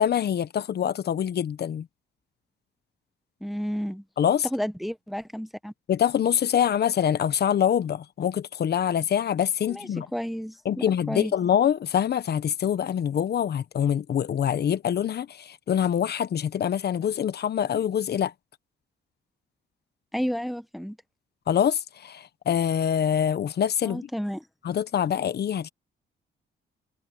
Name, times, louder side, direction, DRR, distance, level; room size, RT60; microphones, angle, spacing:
voice 1, 0.0-1.9 4.2-4.5 5.9-10.1 10.6-18.3 21.5-24.0 24.6-25.7, left 9 dB, 55° left, 1.1 m, -25 dB
voice 2, 3.4-4.0 4.4-5.7 9.6-11.3 20.1-21.0 23.8-24.4, equal, ahead, 1.0 m, -31 dB
cardioid pair, 90°, 20 cm